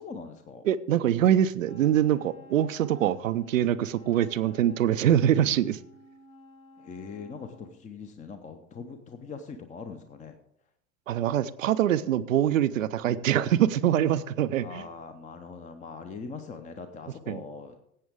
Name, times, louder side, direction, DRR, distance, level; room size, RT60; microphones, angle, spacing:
voice 1, 0.0-0.7 6.8-10.4 11.7-11.8 14.6-17.8, left 5 dB, 20° left, 7 dB, 0.7 m, -42 dB
voice 2, 0.6-5.8 11.1-14.8 17.3-17.4, right 11 dB, 70° right, 13 dB, 0.6 m, -24 dB
Wind instrument woodwind instrument, 1.6-7.8, left 2 dB, 70° left, 4.7 m, -53 dB
17.5 x 7.8 x 3.6 m, 0.73 s
figure-of-eight pair, 80°, 41 cm